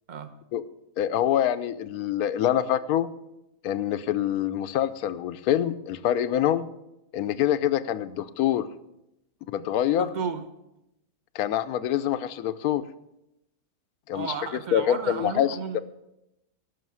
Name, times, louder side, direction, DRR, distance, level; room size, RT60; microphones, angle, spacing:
voice 1, 1.0-3.1 3.6-6.7 7.1-8.7 9.5-10.1 11.3-12.8 14.1-14.3 14.7-15.8, left 10 dB, 65° left, 13 dB, 1.1 m, -25 dB
voice 2, 9.9-10.4 14.1-15.8, right 6 dB, 35° right, 9 dB, 0.9 m, -33 dB
17.5 x 6.5 x 6.2 m, 0.88 s
omnidirectional pair, 1.8 m